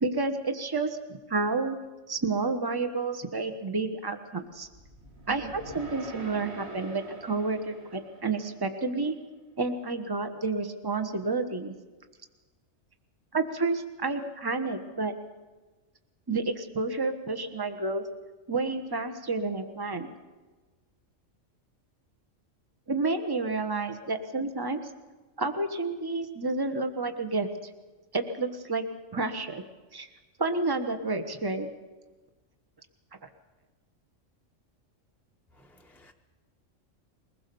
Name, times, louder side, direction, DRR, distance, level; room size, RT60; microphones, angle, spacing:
voice 1, 0.0-1.0 1.3-1.8 2.1-4.7 5.3-9.1 9.6-11.7 13.3-15.1 16.3-18.0 18.5-20.1 22.9-24.8 25.4-27.5 28.1-28.8 29.1-29.6 29.9-30.1 30.4-31.7, right 3 dB, 20° right, 8 dB, 1.2 m, -30 dB
sound 1, 4.6-8.9, right 2 dB, 55° right, 2.2 m, -45 dB
voice 2, 35.6-36.1, left 1 dB, ahead, 2 dB, 0.8 m, -58 dB
22.0 x 20.0 x 7.0 m, 1.3 s
omnidirectional pair, 1.3 m